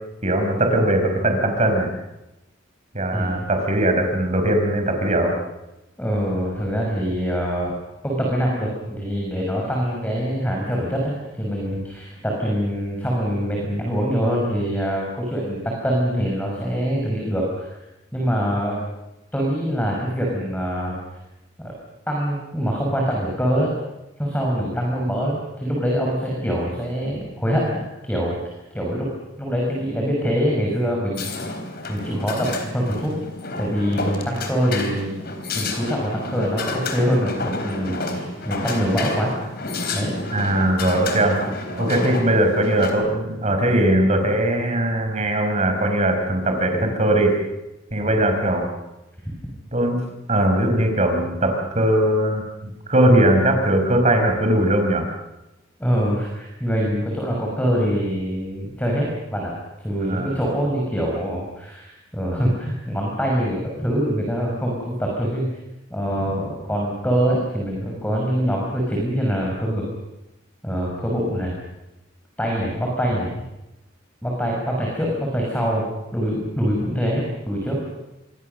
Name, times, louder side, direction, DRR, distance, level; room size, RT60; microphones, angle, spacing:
voice 1, 0.2-1.9 2.9-5.3 40.3-47.4 47.9-48.7 49.7-50.0 50.3-52.4 52.9-55.1 60.0-60.3, right 1 dB, 35° right, 4 dB, 5.1 m, -20 dB
voice 2, 6.0-7.7 8.0-17.7 18.1-18.8 19.3-21.0 21.6-21.7 22.1-23.7 24.2-28.4 28.7-29.1 29.4-31.3 31.9-33.1 33.6-35.2 35.6-39.3 39.9-40.1 48.0-48.2 49.3-49.4 55.8-59.5 59.8-65.5 65.9-69.8 70.6-71.5 72.4-73.3 74.2-75.8 76.1-77.8, equal, 10° left, -2 dB, 5.2 m, -24 dB
sound 1, 31.1-42.9, left 3 dB, 50° left, 4.0 m, -30 dB
27.0 x 23.0 x 6.7 m, 0.96 s
head